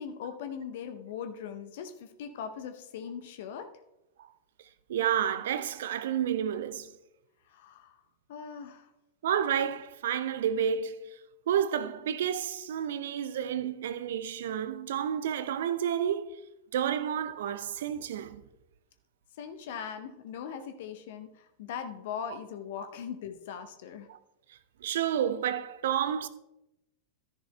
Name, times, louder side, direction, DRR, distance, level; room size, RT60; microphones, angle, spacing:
voice 1, 0.0-3.7 7.5-7.9 8.3-8.9 19.4-24.1, left 7 dB, 55° left, 0.7 m, -40 dB
voice 2, 4.9-6.9 9.2-11.0 11.5-16.4 16.7-18.4 22.8-22.9 24.1-24.2 24.8-26.3, right 9 dB, 60° right, 0.5 m, -30 dB
13.5 x 10.5 x 2.2 m
figure-of-eight pair, 90°, 0 cm